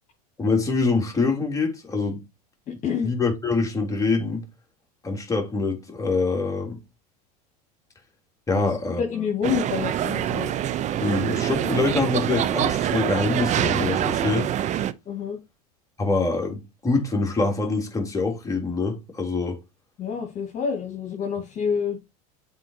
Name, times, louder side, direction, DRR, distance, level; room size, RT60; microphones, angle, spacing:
voice 1, 0.4-2.2 3.0-4.4 5.0-6.8 8.5-9.0 11.0-14.5 16.0-19.6, left 3 dB, 15° left, 3.2 m, -25 dB
voice 2, 2.7-3.1 8.6-8.7 9.0-10.5 15.1-15.4 20.0-22.0, left 6 dB, 40° left, 2.6 m, -28 dB
sound 1, 9.4-14.9, right 11 dB, 35° right, 0.7 m, -25 dB
7.7 x 4.4 x 4.8 m
hypercardioid pair, 95°, 20 cm